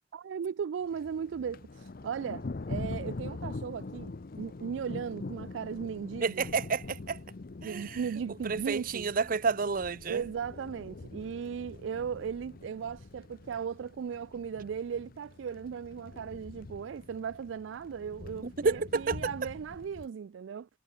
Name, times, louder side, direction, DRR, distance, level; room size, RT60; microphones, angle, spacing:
voice 1, 0.1-4.1 4.4-6.5 7.6-9.1 10.1-20.7, right 7 dB, 75° right, 0.4 m, -37 dB
Thunder, 0.9-20.1, left 3 dB, 50° left, 0.6 m, -44 dB
voice 2, 6.2-7.2 7.6-8.0 8.4-10.2 18.4-19.2, right 4 dB, 50° right, 0.7 m, -30 dB
head